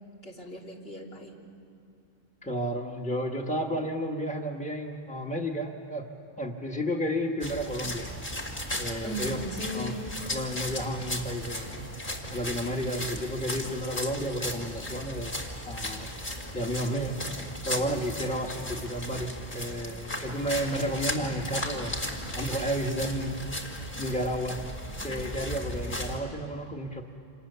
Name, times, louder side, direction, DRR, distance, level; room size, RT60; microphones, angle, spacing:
voice 1, 0.2-1.4 9.0-10.1, equal, 70° left, -2 dB, 3.4 m, -37 dB
voice 2, 2.4-6.1 6.4-8.1 8.8-9.4 9.7-9.9 10.3-11.7 12.3-16.1 16.5-17.2 17.6-23.6 24.0-24.6 25.0-27.0, equal, 5° left, 2 dB, 1.4 m, -32 dB
sound 1, 7.4-26.2, left 1 dB, 50° left, 2.9 m, -36 dB
29.0 x 27.0 x 6.9 m, 2.6 s
omnidirectional pair, 1.1 m